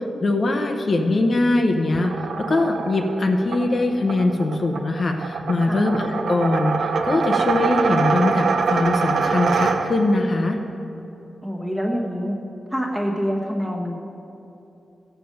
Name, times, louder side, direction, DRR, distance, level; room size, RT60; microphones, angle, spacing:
voice 1, 0.2-2.1 2.4-10.6, left 2 dB, 40° left, 3 dB, 0.7 m, -21 dB
sound 1, 1.9-10.2, right 5 dB, 65° right, 0.5 m, -24 dB
voice 2, 11.4-12.4 12.7-14.0, equal, 5° right, -1 dB, 1.2 m, -26 dB
16.0 x 6.9 x 5.2 m, 2.8 s
wide cardioid pair, 155°, 0 cm